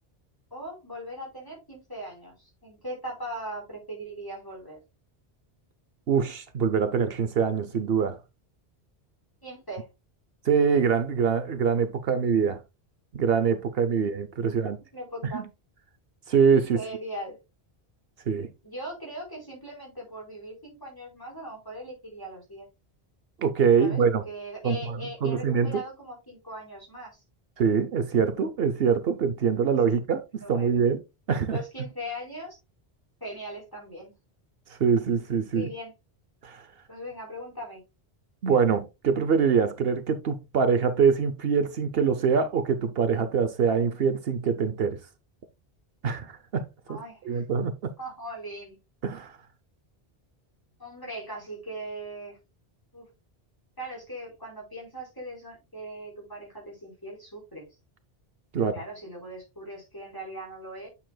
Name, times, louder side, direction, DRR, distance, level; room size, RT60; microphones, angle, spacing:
voice 1, 0.5-4.8 9.4-9.9 13.9-14.0 14.5-14.6 14.9-15.4 16.7-17.4 18.6-22.6 23.8-27.2 29.9-30.0 30.4-30.8 31.5-32.6 33.2-34.1 35.5-35.9 36.9-37.8 46.9-47.4 48.0-48.8 50.8-52.4 52.9-53.1 53.8-57.7 58.6-60.9, right 1 dB, 20° left, 4.3 m, -39 dB
voice 2, 6.1-8.2 10.5-12.6 13.1-14.8 15.3-15.4 16.3-16.8 18.3-18.5 23.4-24.2 24.6-24.8 25.2-25.8 27.6-31.0 31.3-31.6 34.8-35.7 36.4-36.6 38.4-45.0 46.0-47.0 47.3-47.9 49.0-49.3 58.5-58.7, right 6 dB, 70° right, 1.0 m, -24 dB
9.0 x 7.1 x 2.2 m
omnidirectional pair, 1.0 m